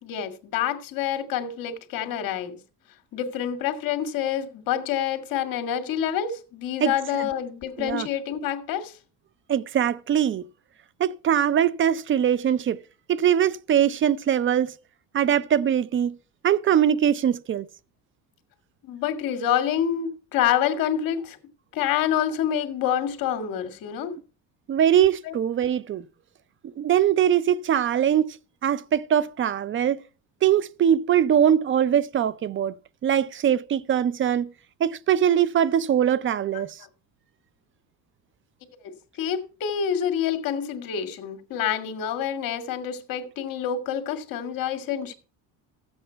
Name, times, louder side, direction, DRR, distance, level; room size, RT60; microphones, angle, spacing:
voice 1, 0.0-2.6 3.1-9.0 18.8-21.4 21.7-24.2 25.2-25.3 36.8-36.9 38.8-45.1, left 9 dB, 65° left, 1.9 m, -27 dB
voice 2, 9.5-10.4 11.0-12.8 13.1-14.7 15.1-16.1 16.4-17.6 24.7-26.0 26.8-28.3 28.6-30.0 30.4-32.7 33.0-34.5 34.8-36.7, right 9 dB, 35° right, 0.5 m, -22 dB
13.5 x 8.0 x 4.4 m
cardioid pair, 115°, 37 cm